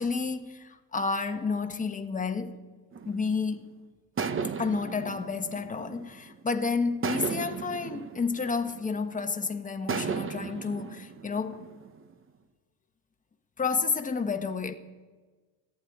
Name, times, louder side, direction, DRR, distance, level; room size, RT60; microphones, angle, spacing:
voice 1, 0.0-2.6 3.0-3.7 4.6-11.6 13.6-14.7, left 4 dB, 15° left, 1.2 m, -30 dB
sound 1, 2.9-3.6 4.2-6.4 7.0-9.3 9.9-12.1, right 5 dB, 30° right, 1.0 m, -35 dB
14.5 x 10.5 x 9.4 m
cardioid pair, 110°, 45 cm